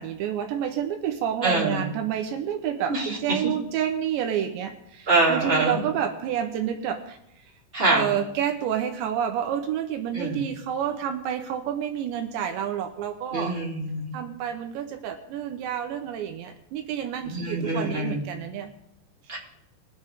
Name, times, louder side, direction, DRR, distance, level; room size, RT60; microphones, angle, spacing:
voice 1, 0.0-7.2 7.9-13.6 14.1-18.7, right 9 dB, 80° right, 6 dB, 3.2 m, -29 dB
voice 2, 1.4-1.8 2.9-3.4 5.1-5.8 7.7-8.1 10.1-10.4 13.3-14.2 17.2-18.2 19.3-19.4, right 2 dB, 10° right, -5 dB, 4.0 m, -25 dB
21.5 x 8.9 x 3.7 m, 0.80 s
omnidirectional pair, 5.2 m